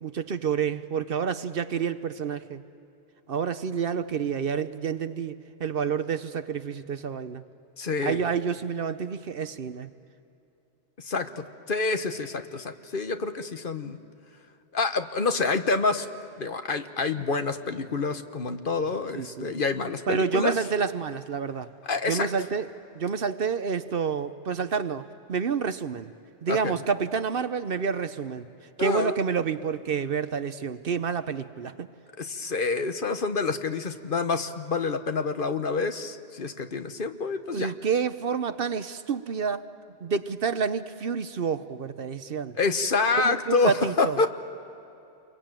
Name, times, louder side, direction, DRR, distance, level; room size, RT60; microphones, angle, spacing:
voice 1, 0.0-2.6 3.3-7.4 8.0-9.9 19.2-19.5 20.1-21.7 22.1-22.7 22.9-25.0 25.3-26.1 26.4-28.5 28.8-31.9 37.5-39.7 40.0-42.5 43.2-44.2, right 6 dB, 60° right, 11 dB, 1.0 m, -28 dB
voice 2, 7.8-8.2 11.0-14.0 14.7-16.1 16.4-20.5 21.8-22.3 26.5-26.9 28.8-29.2 32.2-37.7 42.5-44.3, left 4 dB, 50° left, 8 dB, 1.2 m, -27 dB
28.5 x 23.5 x 8.9 m, 2.8 s
omnidirectional pair, 1.2 m